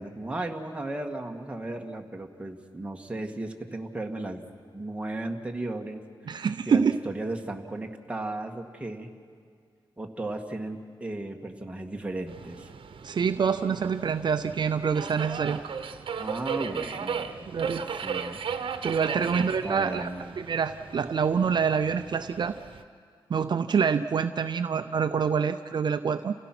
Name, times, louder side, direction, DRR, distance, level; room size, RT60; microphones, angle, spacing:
voice 1, 0.0-4.4 4.7-9.1 10.0-12.7 16.2-18.4 19.1-20.4, right 2 dB, 15° right, 2 dB, 1.7 m, -35 dB
voice 2, 6.3-7.0 13.0-15.6 17.5-17.9 18.8-20.1 20.4-22.5 23.3-26.3, right 6 dB, 60° right, 9 dB, 0.6 m, -26 dB
Subway metro underground, 12.3-22.8, right 6 dB, 75° right, 1.0 m, -36 dB
29.0 x 16.5 x 6.0 m, 2.1 s
wide cardioid pair, 100°, 9 cm